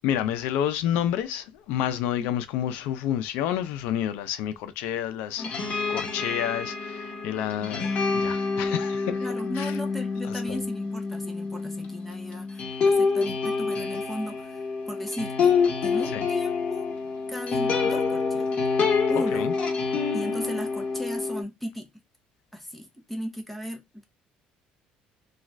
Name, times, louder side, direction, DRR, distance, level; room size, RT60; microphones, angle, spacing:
voice 1, 0.0-9.3 9.6-9.8 10.3-10.6 16.1-16.2 19.1-19.6, left 10 dB, 85° left, 0.5 m, -29 dB
sound 1, 5.4-21.4, left 4 dB, 45° left, 1.2 m, -27 dB
voice 2, 9.2-15.6 15.8-16.9 17.3-18.5 19.1-19.5 20.1-21.9 22.5-24.1, equal, 5° left, 0.7 m, -36 dB
2.4 x 2.3 x 3.2 m
cardioid pair, 115°, 3 cm